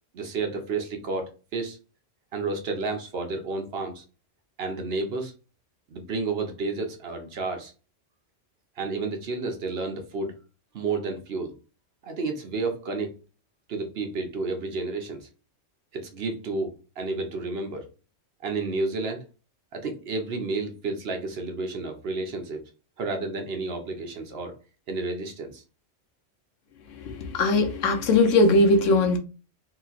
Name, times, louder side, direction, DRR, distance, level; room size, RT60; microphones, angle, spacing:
voice 1, 0.1-1.8 2.3-4.0 4.6-5.3 5.9-7.7 8.8-10.4 10.7-11.5 12.0-13.2 13.7-15.3 15.9-17.9 18.4-19.2 19.7-22.6 23.0-24.5 24.9-25.6, right 3 dB, 60° right, 0.9 m, -31 dB
voice 2, 27.0-29.2, left 2 dB, 85° left, 1.1 m, -20 dB
3.1 x 2.9 x 2.4 m
omnidirectional pair, 1.3 m